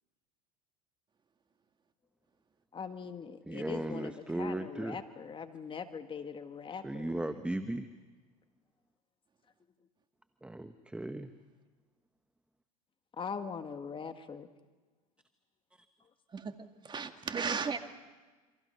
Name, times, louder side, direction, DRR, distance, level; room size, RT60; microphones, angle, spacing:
voice 1, 2.7-7.2 13.2-14.5, left 6 dB, 25° left, 8 dB, 1.8 m, -41 dB
voice 2, 3.5-5.0 6.7-7.9 10.4-11.3, right 1 dB, 5° right, 9 dB, 1.1 m, -36 dB
voice 3, 16.8-17.8, right 5 dB, 25° right, 7 dB, 2.1 m, -34 dB
28.5 x 26.0 x 5.7 m, 1.3 s
hypercardioid pair, 85°, 19 cm